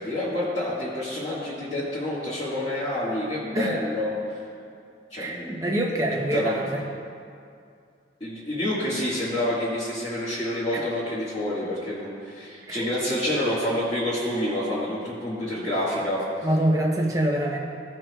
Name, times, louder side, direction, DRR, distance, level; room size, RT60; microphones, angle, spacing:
voice 1, 0.0-4.4 5.1-5.6 6.3-6.6 8.2-16.2, left 1 dB, 35° left, -13 dB, 1.9 m, -28 dB
voice 2, 5.1-6.8 10.7-10.8 12.7-12.9 13.3-13.4 16.4-17.6, right 1 dB, 20° right, -2 dB, 0.9 m, -25 dB
17.5 x 5.9 x 2.4 m, 2.4 s
head